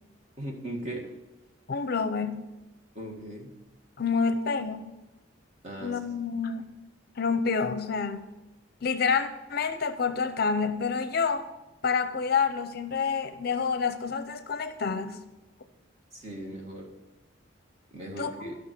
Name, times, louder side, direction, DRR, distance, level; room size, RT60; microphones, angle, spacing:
voice 1, 0.4-1.1 3.0-3.5 5.6-6.0 16.1-16.9 17.9-18.5, right 1 dB, 35° right, 0 dB, 1.8 m, -38 dB
voice 2, 1.7-2.5 4.0-4.9 5.8-6.7 7.2-8.3 8.8-11.4 11.8-15.2 18.2-18.5, left 5 dB, 50° left, 11 dB, 0.6 m, -28 dB
12.5 x 6.2 x 6.0 m, 1.1 s
head